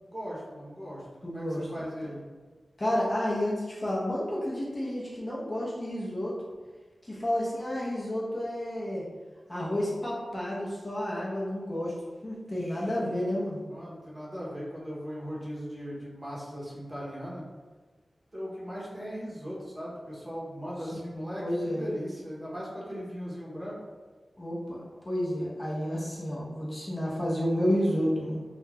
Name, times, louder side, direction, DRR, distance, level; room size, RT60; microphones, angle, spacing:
voice 1, 0.0-1.4 1.7-2.2 12.4-13.1 13.6-17.5 18.3-23.8, equal, 20° right, -7 dB, 0.8 m, -38 dB
voice 2, 1.2-1.9 2.8-6.4 7.0-9.0 9.5-11.9 12.2-13.6 21.1-21.8 24.4-28.4, equal, 30° left, -6 dB, 0.6 m, -30 dB
2.3 x 2.1 x 3.2 m, 1.4 s
wide cardioid pair, 105°, 0 cm